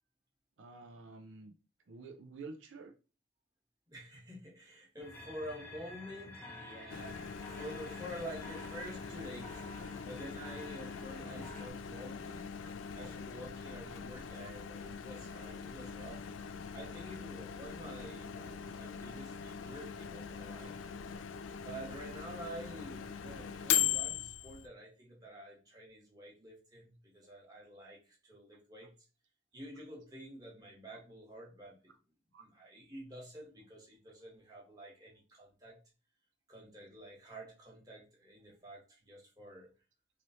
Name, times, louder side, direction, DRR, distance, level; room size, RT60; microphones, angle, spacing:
voice 1, 0.6-1.5 1.9-2.9 12.6-12.7 13.0-13.1 27.3-27.4 32.3-32.5, right 3 dB, 75° right, 0.5 m, -49 dB
voice 2, 3.9-9.6 10.0-12.5 12.9-16.3 16.7-20.7 21.6-28.9 29.5-31.9 32.4-35.8 36.5-39.7, equal, 20° right, 1.1 m, -49 dB
sound 1, 5.0-11.7, left 2 dB, 10° left, 0.7 m, -50 dB
Microwave oven, 6.9-24.7, left 8 dB, 75° left, 0.3 m, -40 dB
3.1 x 2.9 x 2.6 m
head